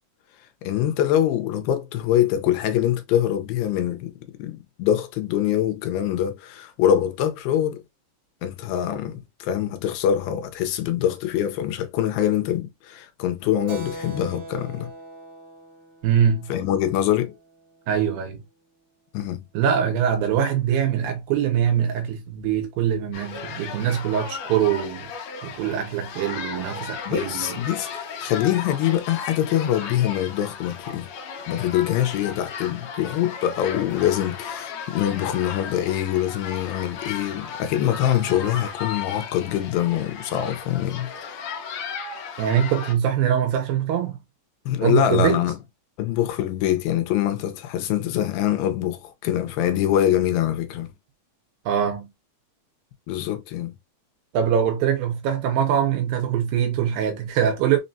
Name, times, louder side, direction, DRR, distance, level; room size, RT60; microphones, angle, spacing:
voice 1, 0.6-7.8 8.4-14.9 16.5-17.4 19.1-19.5 27.1-31.1 31.5-41.1 44.7-45.5 46.0-50.9 53.1-53.7, left 11 dB, 85° left, 2.5 m, -24 dB
Keyboard (musical), 13.7-17.8, right 2 dB, 60° right, 1.3 m, -41 dB
voice 2, 16.0-16.5 17.9-18.4 19.5-25.1 25.4-27.6 42.4-44.2 44.8-45.4 51.7-52.1 54.3-57.8, right 9 dB, 80° right, 2.5 m, -23 dB
sound 1, 23.1-42.9, left 6 dB, 70° left, 1.8 m, -35 dB
5.8 x 2.1 x 2.6 m
omnidirectional pair, 4.1 m